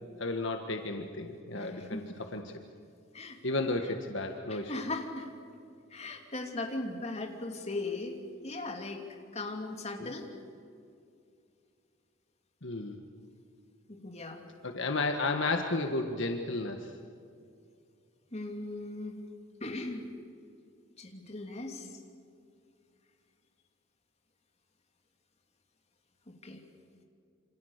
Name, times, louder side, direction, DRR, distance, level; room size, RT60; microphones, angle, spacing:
voice 1, 0.2-2.0 2.3-2.4 3.4-4.7 10.0-10.1 12.6-13.0 14.6-16.8, left 2 dB, 60° left, 4 dB, 1.6 m, -32 dB
voice 2, 1.5-2.2 3.1-3.4 3.8-3.9 4.5-5.3 5.9-8.2 8.4-9.0 9.3-10.3 13.9-14.4 18.3-19.2 19.6-20.1 21.0-21.9 26.3-26.6, left 2 dB, 30° left, 2 dB, 3.1 m, -38 dB
28.0 x 26.5 x 6.7 m, 2.4 s
head